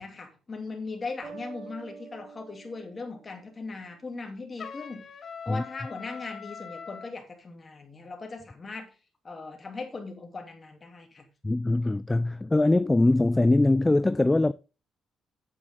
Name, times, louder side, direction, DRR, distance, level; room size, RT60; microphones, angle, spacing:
voice 1, 0.0-5.1 5.4-8.9 9.2-11.3, left 3 dB, 30° left, 2.9 m, -39 dB
sound 1, 1.2-4.0, right 5 dB, 50° right, 2.7 m, -47 dB
Trumpet, 4.6-7.1, left 6 dB, 50° left, 1.1 m, -42 dB
voice 2, 11.4-14.5, left 2 dB, 15° left, 0.3 m, -22 dB
9.0 x 8.3 x 3.7 m
cardioid pair, 90°, 0 cm